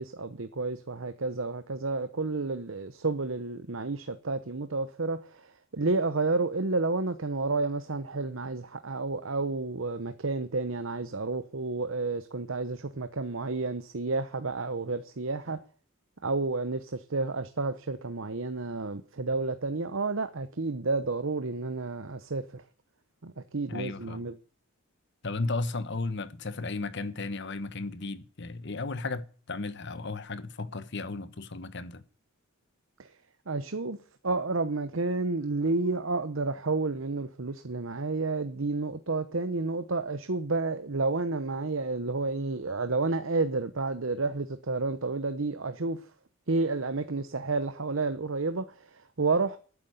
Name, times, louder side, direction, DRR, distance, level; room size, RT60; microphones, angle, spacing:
voice 1, 0.0-15.6 16.2-22.6 23.2-24.3 33.0-33.1 33.5-34.0 34.2-46.0 46.5-49.6, right 3 dB, 65° right, 0.9 m, -30 dB
voice 2, 23.7-24.2 25.2-32.0, left 3 dB, 55° left, 1.2 m, -34 dB
11.5 x 9.8 x 8.2 m
head